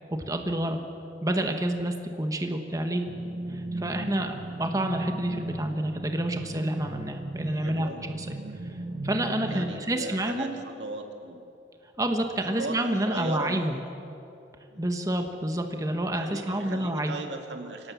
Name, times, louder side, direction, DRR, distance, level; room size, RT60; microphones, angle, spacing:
voice 1, 0.3-0.8 1.2-3.0 3.5-7.9 8.2-8.3 9.0-10.6 12.0-13.8 14.8-17.1, right 1 dB, 20° right, 5 dB, 1.3 m, -28 dB
sound 1, 3.1-9.8, right 2 dB, 55° right, 0.9 m, -36 dB
voice 2, 7.4-8.1 9.4-11.4 12.5-13.8 14.7-14.8 16.2-17.9, right 2 dB, 90° right, 4 dB, 2.1 m, -38 dB
24.5 x 18.5 x 7.2 m, 2.8 s
head